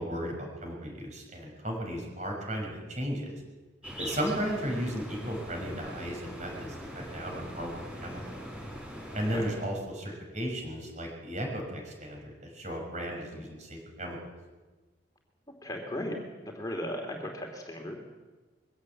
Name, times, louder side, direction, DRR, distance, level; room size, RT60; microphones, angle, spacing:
voice 1, 0.0-3.3 4.0-6.7 6.9-7.7 8.0-8.4 9.1-14.2, equal, 40° right, 1 dB, 6.4 m, -35 dB
sound 1, 3.8-9.8, equal, 5° right, 6.2 m, -42 dB
voice 2, 15.6-16.2 16.5-18.0, left 1 dB, 20° left, 1 dB, 2.8 m, -36 dB
22.5 x 16.0 x 8.7 m, 1.3 s
head